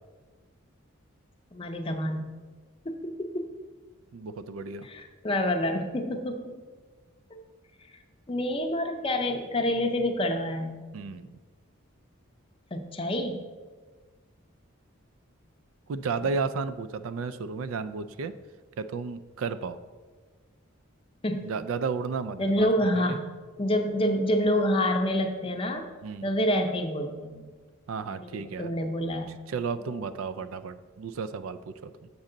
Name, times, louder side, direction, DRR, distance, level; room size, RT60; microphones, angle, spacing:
voice 1, 1.5-2.3 2.9-3.5 4.8-6.6 7.3-7.4 8.3-10.8 12.7-13.5 16.2-16.3 21.2-21.5 22.4-23.2 23.6-25.9 26.2-27.5 28.1-29.3 29.8-29.9, left 1 dB, 25° left, 5 dB, 0.5 m, -28 dB
voice 2, 4.1-4.9 10.9-11.3 15.9-18.3 18.8-19.8 21.4-22.7 23.1-23.2 26.0-26.3 27.9-28.7 29.5-31.9, right 5 dB, 75° right, 13 dB, 0.3 m, -33 dB
7.2 x 5.4 x 3.8 m, 1.4 s
head